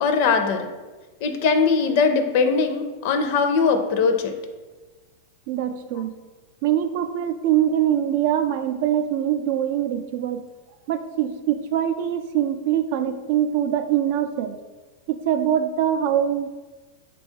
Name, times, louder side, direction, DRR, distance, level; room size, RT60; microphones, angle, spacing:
voice 1, 0.0-0.7 1.2-4.4, left 5 dB, 60° left, 6 dB, 0.4 m, -20 dB
voice 2, 5.5-6.2 6.6-10.5 10.9-14.6 15.1-16.5, right 10 dB, 60° right, 9 dB, 0.3 m, -23 dB
3.8 x 2.3 x 4.4 m, 1.3 s
hypercardioid pair, 120°, 0 cm